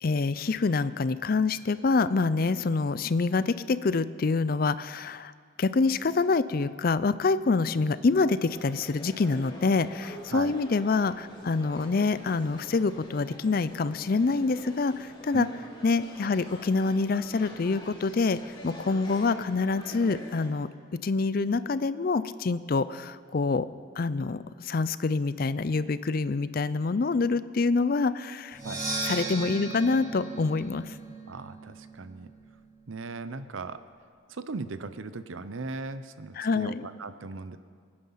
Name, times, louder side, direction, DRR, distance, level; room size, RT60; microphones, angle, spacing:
voice 1, 0.0-5.3 5.6-15.5 15.8-20.7 21.0-23.7 24.0-28.6 29.1-30.9 36.4-36.8, left 4 dB, 45° left, 15 dB, 0.4 m, -26 dB
sound 1, 8.3-20.5, equal, 25° left, 2.9 m, -46 dB
Percussion, 28.5-32.3, right 3 dB, 15° right, 2.8 m, -36 dB
voice 2, 31.3-32.3 32.9-33.8 34.3-37.6, right 3 dB, 85° right, 12 dB, 0.7 m, -38 dB
25.0 x 9.8 x 5.7 m, 2.1 s
head